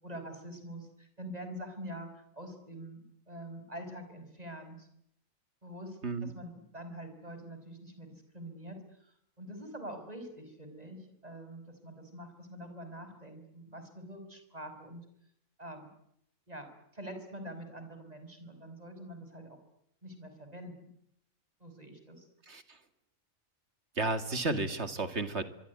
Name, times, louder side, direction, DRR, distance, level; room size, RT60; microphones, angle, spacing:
voice 1, 0.0-4.9 5.6-15.0 15.6-15.9 16.5-16.7 16.9-19.6 20.0-21.0 21.6-22.3, right 1 dB, 30° right, 8 dB, 5.5 m, -45 dB
voice 2, 22.5-22.8 24.0-25.4, right 3 dB, 55° right, 10 dB, 2.4 m, -32 dB
24.5 x 24.5 x 9.5 m, 0.75 s
omnidirectional pair, 1.4 m